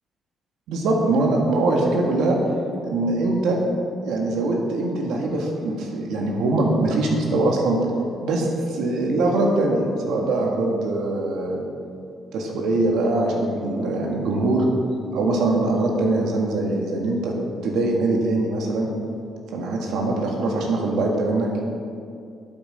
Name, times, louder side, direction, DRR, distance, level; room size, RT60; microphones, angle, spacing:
voice 1, 0.7-2.4 2.8-3.6 4.0-7.8 8.2-11.6 12.3-14.7 15.1-17.3 17.6-18.9 19.5-21.5, right 2 dB, 85° right, 0 dB, 1.7 m, -22 dB
13.0 x 8.2 x 5.1 m, 2.5 s
cardioid pair, 90°, 0 cm